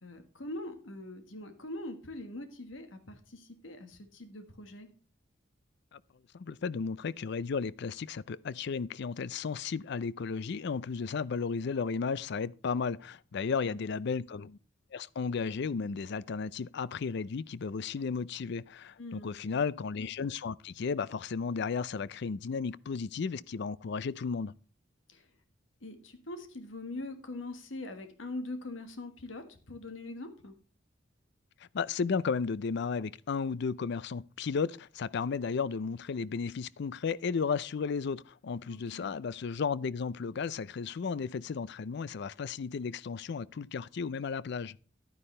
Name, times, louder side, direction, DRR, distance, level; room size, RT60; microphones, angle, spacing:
voice 1, 0.0-4.9 13.6-14.0 19.0-19.6 25.1-25.3 25.8-30.6 38.7-39.2, left 2 dB, 90° left, 1.6 m, -43 dB
voice 2, 6.3-14.6 14.9-24.5 31.7-44.8, left 5 dB, 60° left, 0.4 m, -34 dB
11.0 x 9.8 x 3.2 m
head